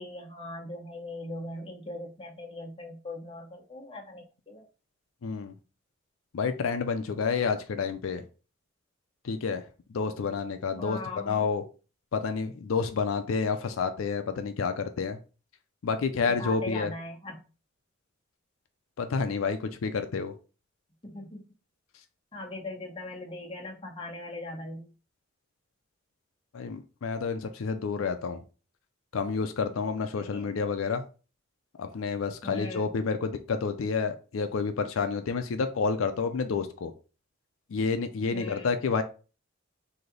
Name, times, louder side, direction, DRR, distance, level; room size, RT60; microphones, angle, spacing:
voice 1, 0.0-4.7 10.8-11.5 16.3-17.4 21.0-21.5 22.3-24.9 30.1-30.5 32.4-32.9 38.3-38.7, left 2 dB, 25° left, 1 dB, 0.9 m, -40 dB
voice 2, 5.2-5.5 6.3-8.2 9.2-9.6 9.9-11.0 11.3-11.6 12.1-15.2 15.8-16.9 19.0-20.3 26.5-28.4 29.1-31.0 31.8-36.9 37.7-39.0, left 5 dB, 90° left, 8 dB, 0.4 m, -29 dB
3.2 x 2.7 x 3.8 m, 0.34 s
head